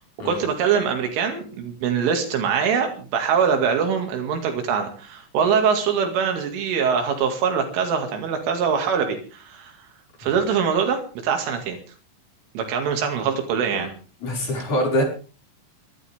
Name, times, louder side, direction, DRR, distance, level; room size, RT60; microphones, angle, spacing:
voice 1, 0.3-9.7 10.2-11.8 12.5-13.9, right 6 dB, 80° right, 4 dB, 4.8 m, -23 dB
voice 2, 14.2-15.0, equal, 40° left, 0 dB, 6.9 m, -24 dB
26.0 x 13.0 x 3.6 m, 0.37 s
omnidirectional pair, 5.6 m